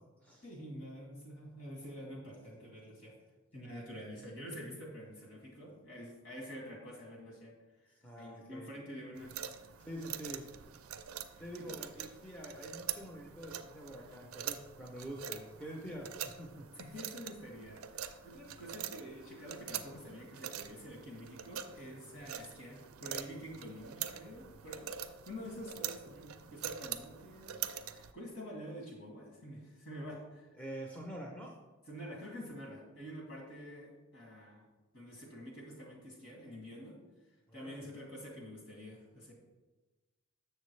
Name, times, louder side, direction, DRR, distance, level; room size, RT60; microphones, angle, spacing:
voice 1, 0.4-3.1 3.5-7.5 7.8-9.4 11.3-11.8 16.7-24.9 25.3-27.6 27.9-30.5 31.9-34.7 34.9-37.0 37.5-39.3, equal, 60° left, -2 dB, 2.3 m, -47 dB
voice 2, 8.0-8.7 9.8-10.4 10.9-11.0 11.4-16.7 30.6-31.5 37.5-37.9, equal, 5° left, -1 dB, 0.6 m, -46 dB
sound 1, 9.2-28.1, right 9 dB, 75° right, 0.4 m, -44 dB
7.6 x 6.6 x 3.2 m, 1.2 s
head